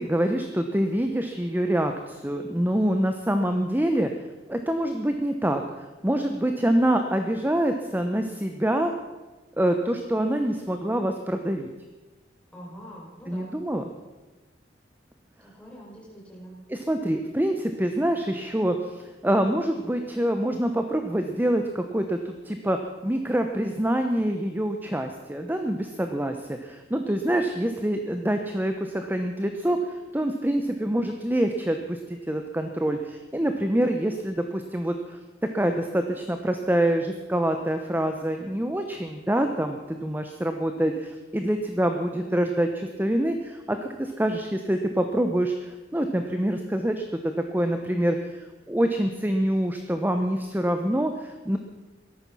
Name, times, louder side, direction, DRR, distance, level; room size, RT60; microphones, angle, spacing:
voice 1, 0.0-4.1 4.5-8.9 9.6-11.7 13.3-13.8 16.7-22.8 23.0-32.0 32.3-35.2 35.5-47.0 47.5-51.6, right 1 dB, 10° right, 6 dB, 0.9 m, -26 dB
voice 2, 12.5-13.5 15.4-16.5 42.1-42.3, equal, 5° left, -4 dB, 5.3 m, -44 dB
17.5 x 13.5 x 6.2 m, 1.2 s
head